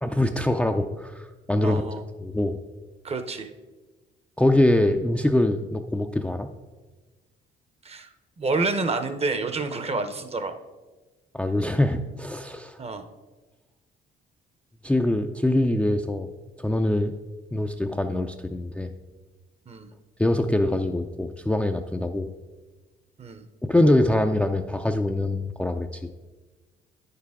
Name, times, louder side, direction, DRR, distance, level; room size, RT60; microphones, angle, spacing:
voice 1, 0.0-1.8 2.2-2.6 4.4-6.5 11.3-12.8 14.8-16.3 16.6-17.1 17.5-18.9 20.2-22.3 23.6-25.9, left 1 dB, 5° left, 5 dB, 0.4 m, -23 dB
voice 2, 1.6-2.0 3.0-3.5 7.8-8.1 8.4-10.5 12.8-13.1 19.7-19.9 23.2-23.4, right 3 dB, 30° right, 9 dB, 0.7 m, -28 dB
9.2 x 6.7 x 3.6 m, 1.2 s
cardioid pair, 90°, 20 cm